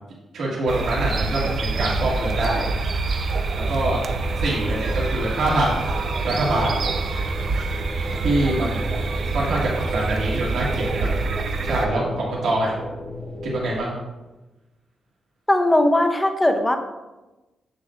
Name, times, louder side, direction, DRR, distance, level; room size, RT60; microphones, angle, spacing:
voice 1, 0.3-2.7 3.5-4.0 4.4-6.0 6.2-6.8 8.2-9.0 9.3-11.2 11.6-12.7 13.4-13.9, right 1 dB, 70° right, -5 dB, 1.7 m, -24 dB
sound 1, 0.7-11.9, right 3 dB, 50° right, 0.4 m, -26 dB
sound 2, 3.8-13.8, left 1 dB, 10° right, 0.9 m, -35 dB
voice 2, 15.5-16.8, left 1 dB, 10° left, 6 dB, 0.6 m, -18 dB
7.5 x 6.6 x 2.4 m, 1.1 s
wide cardioid pair, 150°, 0 cm